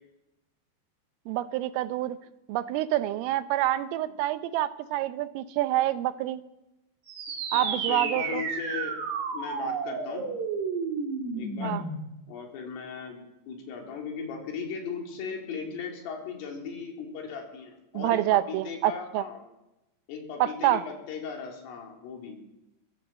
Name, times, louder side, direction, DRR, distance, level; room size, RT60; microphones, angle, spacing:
voice 1, 1.3-2.2 2.5-6.4 7.5-8.4 11.6-11.9 18.0-19.3 20.4-20.8, right 14 dB, 90° right, 12 dB, 3.5 m, -27 dB
sound 1, 7.1-12.1, right 4 dB, 60° right, 4.6 m, -32 dB
voice 2, 7.5-9.0 9.3-10.3 11.4-11.7 12.3-13.2 13.5-19.4 20.1-22.4, left 6 dB, 85° left, 1 dB, 6.2 m, -37 dB
23.5 x 15.0 x 7.6 m, 0.94 s
omnidirectional pair, 5.7 m